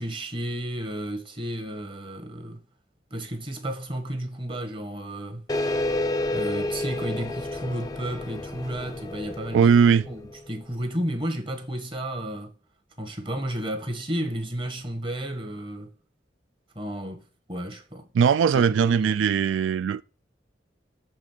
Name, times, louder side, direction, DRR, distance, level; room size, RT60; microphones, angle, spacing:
voice 1, 0.0-2.6 3.1-5.5 6.3-9.7 10.1-10.2 10.5-12.5 13.0-15.9 16.7-17.2 17.5-18.1 18.5-19.2, right 1 dB, 25° right, 1.3 m, -32 dB
sound 1, 5.5-10.6, left 2 dB, 20° left, 0.5 m, -30 dB
voice 2, 9.5-10.0 18.1-20.0, right 7 dB, 85° right, 0.3 m, -19 dB
7.3 x 3.8 x 6.0 m
head